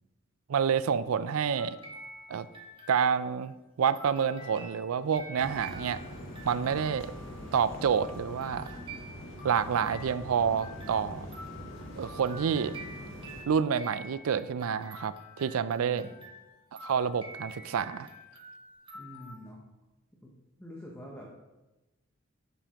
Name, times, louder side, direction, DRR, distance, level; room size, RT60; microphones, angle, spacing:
voice 1, 0.5-1.8 2.3-2.5 2.9-6.0 6.4-7.1 7.5-8.8 9.4-11.3 12.0-12.8 13.5-16.1 16.8-18.1, right 7 dB, 85° right, 15 dB, 0.4 m, -28 dB
sound 1, 1.5-3.4 3.9-19.5, right 1 dB, 25° right, 1.3 m, -48 dB
sound 2, 5.4-13.4, equal, 65° left, 1.3 m, -43 dB
voice 2, 15.8-16.2 18.9-19.6 20.2-20.3 20.6-21.3, equal, 10° left, -3 dB, 0.9 m, -46 dB
10.0 x 7.0 x 3.0 m, 1.0 s
head